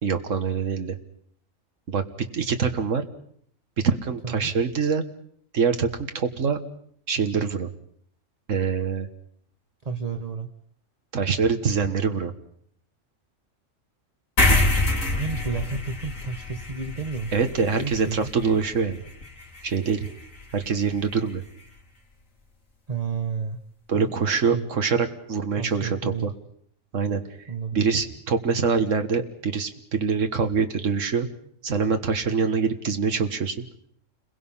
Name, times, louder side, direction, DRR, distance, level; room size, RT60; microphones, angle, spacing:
voice 1, 0.0-1.0 1.9-2.0 2.3-3.1 3.8-5.0 5.5-6.6 7.1-7.7 8.5-9.1 11.1-12.3 17.3-19.0 19.6-20.1 20.5-21.4 23.9-26.3 26.9-27.2 27.7-31.3 31.6-33.6, right 5 dB, 70° right, 7 dB, 1.9 m, -24 dB
voice 2, 9.8-10.5 15.1-18.3 22.9-23.6 23.9-24.1 24.4-24.7 25.6-26.3 27.5-27.8, right 5 dB, 30° right, 8 dB, 1.1 m, -31 dB
sound 1, 14.4-21.2, left 2 dB, 85° left, 3.1 m, -27 dB
29.5 x 22.5 x 5.7 m, 0.66 s
omnidirectional pair, 1.4 m